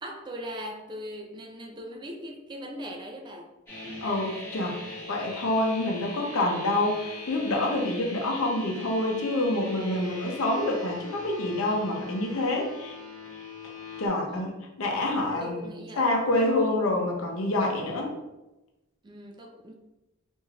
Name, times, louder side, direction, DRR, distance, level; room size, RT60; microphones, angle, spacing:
voice 1, 0.0-3.5 14.3-14.6 15.4-16.1 19.0-19.7, equal, 20° right, 2 dB, 0.3 m, -40 dB
sound 1, 3.7-14.1, left 3 dB, 10° left, 0.9 m, -41 dB
voice 2, 4.0-4.8 5.1-12.9 14.0-14.5 14.8-15.7 16.0-18.1, left 1 dB, 85° left, 1 dB, 0.6 m, -27 dB
3.2 x 2.6 x 2.4 m, 1.0 s
head